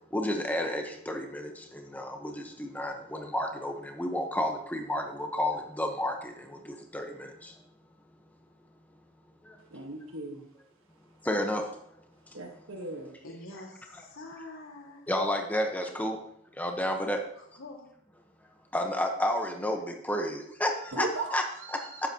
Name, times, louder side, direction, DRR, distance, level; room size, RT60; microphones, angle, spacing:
voice 1, 0.1-7.5 9.4-9.6 11.2-11.8 15.1-16.2 16.5-17.2 18.7-21.4 21.7-22.1, left 1 dB, 10° left, 4 dB, 1.0 m, -31 dB
voice 2, 9.7-10.4 12.3-13.1 20.9-22.1, right 2 dB, 80° right, 1 dB, 1.4 m, -37 dB
voice 3, 13.2-15.1 17.4-17.9, left 2 dB, 85° left, 0 dB, 2.0 m, -46 dB
11.5 x 9.0 x 2.9 m, 0.74 s
head